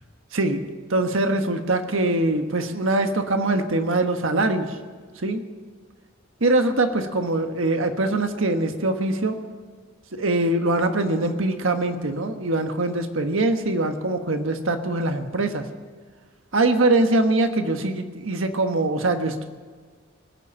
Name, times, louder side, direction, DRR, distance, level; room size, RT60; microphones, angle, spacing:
voice 1, 0.3-0.6 0.9-4.8 5.2-5.4 6.4-9.4 10.1-15.7 16.5-19.4, right 2 dB, 70° right, 7 dB, 1.3 m, -23 dB
19.5 x 7.1 x 8.6 m, 1.5 s
head